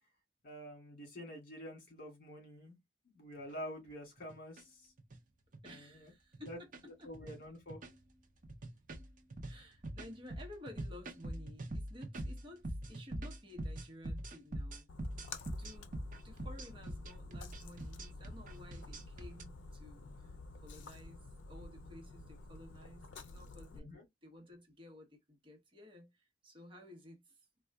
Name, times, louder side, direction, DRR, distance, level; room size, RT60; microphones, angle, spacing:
voice 1, 0.4-2.8 3.1-4.9 5.6-6.1 6.5-6.6 7.0-7.8 23.7-24.0, equal, 50° left, 1.9 m, -48 dB
sound 1, 3.4-3.5 4.2-4.6 5.0-5.2 5.5-5.7 6.3-6.9 7.1-7.4 7.7-8.1 8.4-19.4, right 1 dB, 45° right, 0.6 m, -43 dB
voice 2, 5.6-6.7 7.0-7.1 9.5-14.9 15.6-16.0 16.2-23.9 24.2-27.3, left 1 dB, 30° right, 0.9 m, -54 dB
Splash splatter, 14.9-23.8, left 3 dB, 80° left, 0.5 m, -51 dB
3.7 x 2.2 x 2.2 m
head